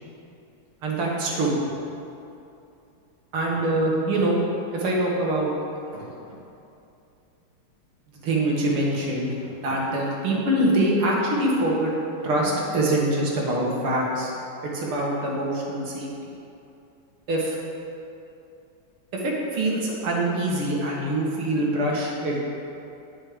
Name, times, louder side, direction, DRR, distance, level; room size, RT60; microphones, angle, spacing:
voice 1, 0.8-1.6 3.3-4.4 4.7-5.5 5.9-6.1 8.2-11.9 12.2-14.3 14.6-16.1 17.3-17.6 19.2-22.4, right 1 dB, 80° right, -3 dB, 2.4 m, -24 dB
9.6 x 6.3 x 4.9 m, 2.7 s
omnidirectional pair, 2.3 m